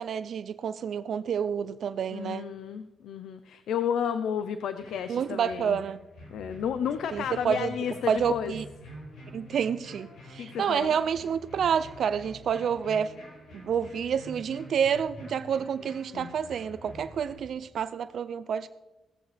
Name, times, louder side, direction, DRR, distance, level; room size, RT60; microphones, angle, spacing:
voice 1, 0.0-2.4 5.1-6.0 7.1-7.7 8.1-8.6 9.3-13.1 13.6-18.7, right 7 dB, 50° right, 12 dB, 0.4 m, -29 dB
voice 2, 2.1-5.8 6.3-8.5 10.4-11.0 16.1-16.4, left 8 dB, 80° left, 10 dB, 0.7 m, -32 dB
sound 1, 4.8-17.4, left 1 dB, 55° left, 5.2 m, -47 dB
17.0 x 14.5 x 3.4 m, 1.0 s
wide cardioid pair, 180°, 0 cm